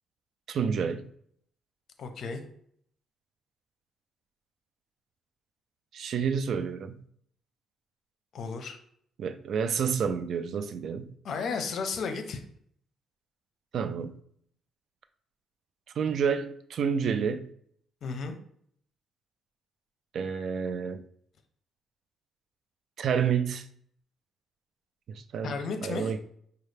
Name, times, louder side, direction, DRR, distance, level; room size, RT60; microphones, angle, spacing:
voice 1, 0.5-1.1 5.9-7.0 9.2-11.1 13.7-14.2 16.0-17.5 20.1-21.0 23.0-23.7 25.1-25.5 25.8-26.2, right 7 dB, 65° right, 0.4 m, -29 dB
voice 2, 2.0-2.4 8.3-8.8 11.2-12.4 18.0-18.4 25.4-26.1, left 5 dB, 65° left, 0.7 m, -33 dB
5.4 x 2.3 x 3.3 m
cardioid pair, 90°, 0 cm